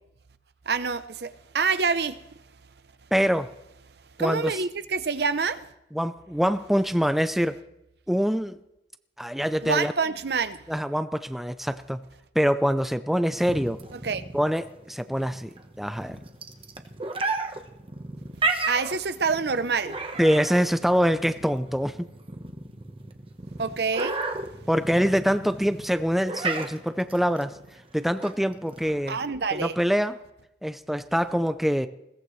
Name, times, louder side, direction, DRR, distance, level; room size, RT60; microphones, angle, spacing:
voice 1, 0.7-2.2 4.2-5.6 9.6-10.6 13.9-14.2 18.7-20.0 23.6-24.2 29.1-29.8, right 5 dB, 60° right, 0.7 m, -26 dB
voice 2, 3.1-3.5 4.2-4.5 5.9-7.6 8.1-8.6 9.2-9.9 10.7-12.0 12.4-13.8 14.3-15.5 15.8-16.2 20.2-22.0 24.7-27.6 27.9-29.2 29.5-30.2 30.6-31.9, equal, ahead, 0.5 m, -24 dB
sound 1, 13.3-29.3, right 3 dB, 30° right, 1.1 m, -34 dB
21.0 x 17.5 x 3.2 m
head